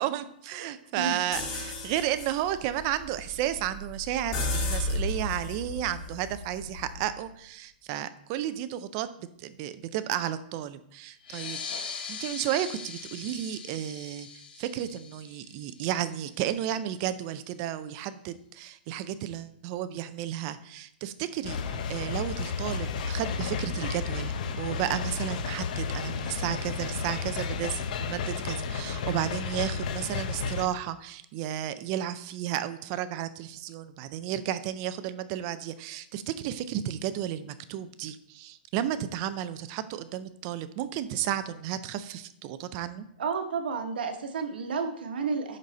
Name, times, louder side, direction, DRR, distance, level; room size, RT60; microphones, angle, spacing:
voice 1, 0.0-11.6 12.1-43.1, right 11 dB, 30° right, 13 dB, 0.4 m, -33 dB
voice 2, 0.6-1.2 43.2-45.6, right 5 dB, 75° right, 6 dB, 1.2 m, -31 dB
sound 1, 1.3-7.1, left 2 dB, 35° left, 2.2 m, -34 dB
sound 2, 11.2-16.3, left 6 dB, 65° left, 1.1 m, -41 dB
sound 3, 21.4-30.7, left 5 dB, 50° left, 0.7 m, -32 dB
10.5 x 4.0 x 4.1 m, 0.71 s
hypercardioid pair, 170°, 5 cm